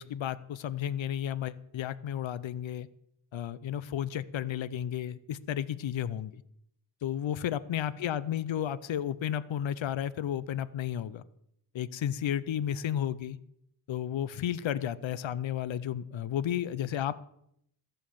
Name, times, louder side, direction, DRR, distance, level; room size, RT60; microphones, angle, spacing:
voice 1, 0.0-2.9 3.3-6.4 7.0-11.2 11.7-13.4 13.9-17.2, left 10 dB, 90° left, 16 dB, 0.7 m, -33 dB
13.5 x 7.8 x 6.9 m, 0.74 s
wide cardioid pair, 80°, 44 cm